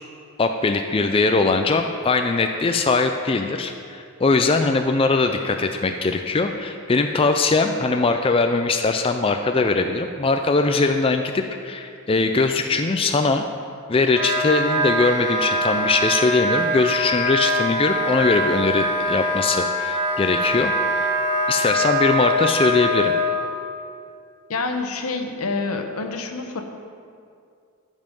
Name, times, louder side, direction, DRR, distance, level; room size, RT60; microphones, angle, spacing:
voice 1, 0.4-13.4 13.9-21.1 21.5-23.1, left 3 dB, 25° left, 6 dB, 0.3 m, -21 dB
Wind instrument woodwind instrument, 14.1-23.4, equal, 55° right, 2.0 m, -23 dB
voice 2, 24.5-26.6, left 3 dB, 80° left, 5 dB, 0.9 m, -27 dB
14.0 x 5.5 x 5.3 m, 2.4 s
head